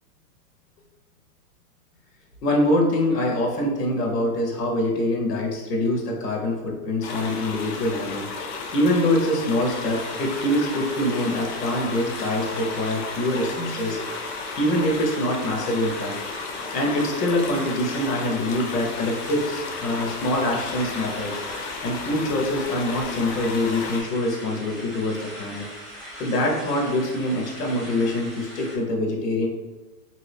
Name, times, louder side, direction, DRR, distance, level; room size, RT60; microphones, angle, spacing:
voice 1, 2.4-8.3 8.7-14.3 14.6-16.2 16.7-21.4 21.8-25.7 26.2-29.5, left 1 dB, 85° left, 0 dB, 0.9 m, -24 dB
sound 1, 7.0-24.0, left 4 dB, 50° left, 0.6 m, -34 dB
sound 2, 9.6-28.8, equal, ahead, 0.6 m, -41 dB
2.7 x 2.7 x 3.3 m, 1.2 s
hypercardioid pair, 135°, 46 cm